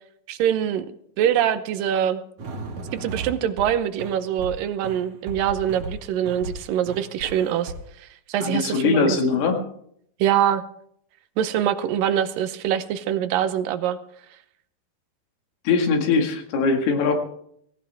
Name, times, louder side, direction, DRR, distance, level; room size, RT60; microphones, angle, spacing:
voice 1, 0.3-0.9 1.2-2.2 3.0-7.7 8.0-9.4 10.2-10.6 11.4-14.0, right 10 dB, 75° right, 11 dB, 2.3 m, -24 dB
sound 1, 2.4-3.7 4.0-4.6 4.8-6.0 6.3-6.6 6.9-7.8, right 2 dB, 55° right, 3.0 m, -35 dB
voice 2, 8.4-9.6 15.7-17.2, left 5 dB, 85° left, 3 dB, 3.9 m, -21 dB
17.5 x 17.0 x 3.5 m, 0.68 s
omnidirectional pair, 4.4 m